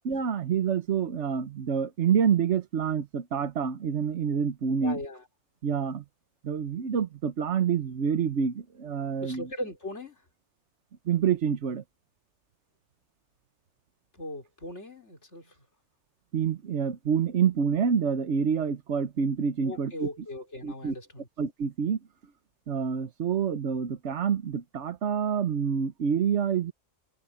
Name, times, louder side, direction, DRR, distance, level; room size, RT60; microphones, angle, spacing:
voice 1, 0.0-5.0 5.6-6.0 6.4-9.5 11.1-11.8 16.3-20.1 20.6-20.9 21.4-22.0 22.7-26.7, right 7 dB, 85° right, 1.3 m, -27 dB
voice 2, 4.8-5.2 9.2-10.2 14.1-15.6 19.6-21.3, left 1 dB, 85° left, 4.6 m, -39 dB
omnidirectional pair, 1.2 m